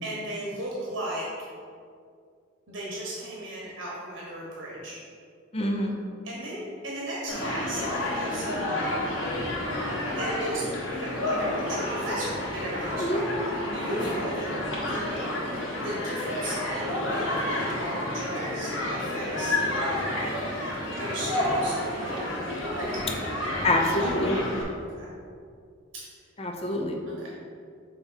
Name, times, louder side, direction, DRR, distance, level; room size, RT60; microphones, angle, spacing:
voice 1, 0.0-1.2 2.7-5.0 6.2-8.9 10.0-10.6 10.9-13.3 13.7-14.5 14.9-15.3 15.7-20.1 20.9-23.4 23.8-24.0 24.7-25.1 25.9-26.0 27.1-27.4, right 1 dB, 80° right, -5 dB, 1.2 m, -36 dB
voice 2, 5.5-6.0 13.0-13.2 23.6-24.4 26.4-27.0, left 1 dB, 30° left, 2 dB, 0.7 m, -26 dB
Human group actions, 7.3-24.6, left 1 dB, 85° left, 1.6 m, -30 dB
5.9 x 3.5 x 5.6 m, 2.2 s
head